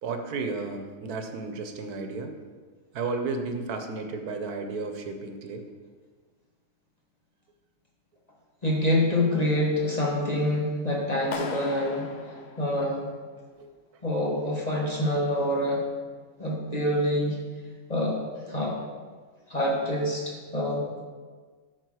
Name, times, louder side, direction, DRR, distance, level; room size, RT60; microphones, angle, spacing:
voice 1, 0.0-2.4 2.9-5.7 13.6-13.7, right 3 dB, 80° right, 6 dB, 1.3 m, -33 dB
voice 2, 8.6-12.1 12.6-13.1 14.0-15.8 16.4-17.4 17.9-18.2 18.5-18.8 19.5-21.0, left 1 dB, 25° left, -3 dB, 1.4 m, -26 dB
Clapping, 11.3-13.4, left 4 dB, 55° left, 0.9 m, -38 dB
9.2 x 4.4 x 6.4 m, 1.5 s
omnidirectional pair, 1.6 m